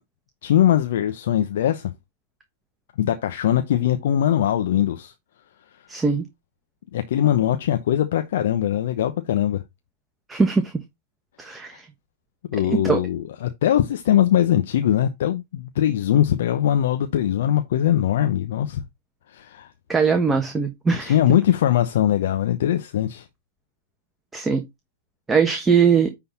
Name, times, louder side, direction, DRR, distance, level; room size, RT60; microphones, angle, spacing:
voice 1, 0.4-1.9 3.0-5.1 6.9-9.6 12.5-18.8 19.3-19.7 20.3-20.4 20.9-23.3, left 11 dB, 65° left, 0.9 m, -21 dB
voice 2, 5.9-6.2 10.3-10.7 11.4-11.8 12.7-13.0 19.9-21.1 24.3-24.6 25.3-26.1, right 5 dB, 10° right, 1.2 m, -20 dB
9.8 x 4.0 x 4.0 m
hypercardioid pair, 115°, 0 cm